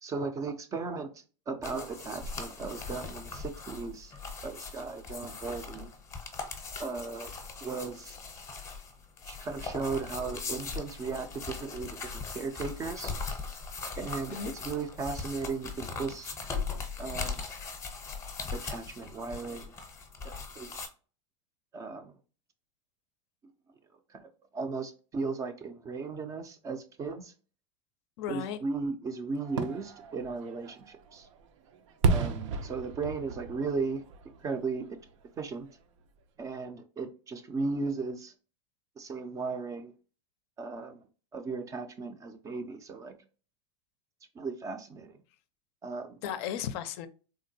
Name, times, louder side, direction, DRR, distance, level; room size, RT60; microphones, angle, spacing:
voice 1, 0.0-4.1 4.4-5.9 6.8-7.3 7.6-8.2 9.3-13.1 14.0-16.3 17.0-17.4 18.5-19.7 20.2-20.9 21.7-22.1 24.1-27.3 28.3-31.3 32.1-34.9 35.4-35.7 36.4-38.3 39.0-39.9 40.6-41.0 41.3-43.1 44.4-45.2 45.8-46.2, right 4 dB, 20° right, 0.4 m, -36 dB
sound 1, 1.6-20.9, left 4 dB, 20° left, 0.7 m, -40 dB
voice 2, 28.2-28.6 46.2-47.1, left 9 dB, 55° left, 0.4 m, -35 dB
Fireworks, 29.4-35.3 35.7-35.8, right 4 dB, 80° right, 0.5 m, -33 dB
3.6 x 2.2 x 2.6 m
supercardioid pair, 135°, 16 cm